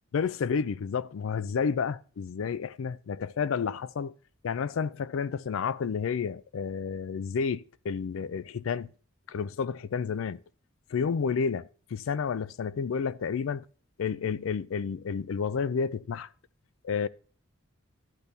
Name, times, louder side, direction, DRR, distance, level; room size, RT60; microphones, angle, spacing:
voice 1, 0.1-4.1 4.4-8.9 9.3-10.4 10.9-13.7 14.0-16.3 16.8-17.1, left 6 dB, 80° left, 0.4 m, -30 dB
12.0 x 10.5 x 2.7 m
head